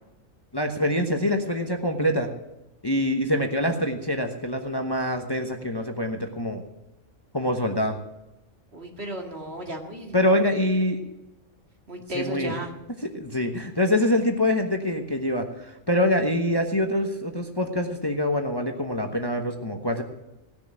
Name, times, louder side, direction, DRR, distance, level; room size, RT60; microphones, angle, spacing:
voice 1, 0.5-2.3 2.8-6.6 7.3-8.0 10.1-11.0 12.1-12.5 13.1-20.0, left 1 dB, 20° left, 4 dB, 1.0 m, -25 dB
voice 2, 8.7-10.2 11.9-12.7, right 1 dB, 55° right, 2 dB, 2.4 m, -34 dB
17.5 x 6.8 x 9.0 m, 0.95 s
omnidirectional pair, 1.3 m